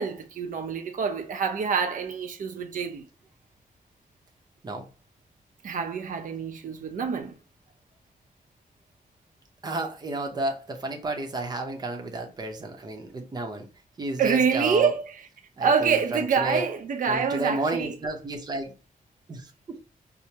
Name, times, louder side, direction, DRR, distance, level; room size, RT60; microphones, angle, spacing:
voice 1, 0.0-3.1 5.6-7.3 14.2-15.1 15.6-17.9, right 6 dB, 65° right, 0.6 m, -26 dB
voice 2, 9.6-13.7 14.0-14.9 15.6-16.6 17.1-18.7 19.3-19.8, right 2 dB, 30° right, 0.7 m, -32 dB
4.6 x 2.0 x 2.7 m
wide cardioid pair, 140°, 15 cm